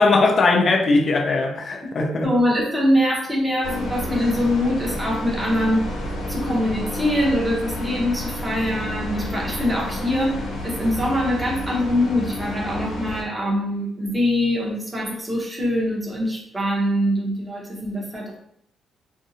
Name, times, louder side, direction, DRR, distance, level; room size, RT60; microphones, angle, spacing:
voice 1, 0.0-2.3, left 3 dB, 45° left, 0.4 m, -19 dB
voice 2, 2.2-5.9 6.3-18.4, left 1 dB, 15° right, 0.9 m, -23 dB
sound 1, 3.6-13.2, left 1 dB, 75° left, 0.9 m, -30 dB
2.6 x 2.2 x 2.6 m
cardioid pair, 90°, 0 cm